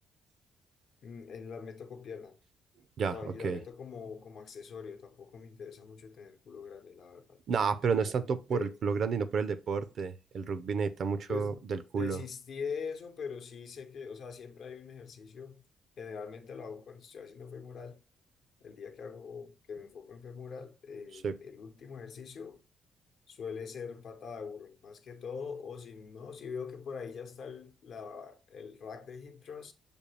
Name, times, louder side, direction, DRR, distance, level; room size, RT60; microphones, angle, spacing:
voice 1, 1.0-2.4 3.0-7.4 8.5-8.8 11.3-11.6 12.0-15.6 16.0-18.0 18.6-22.6 23.3-29.7, left 6 dB, 65° left, 0.8 m, -43 dB
voice 2, 3.0-3.6 7.5-12.2 21.2-21.4, right 5 dB, 60° right, 0.5 m, -31 dB
6.8 x 2.3 x 3.2 m
cardioid pair, 90°, 0 cm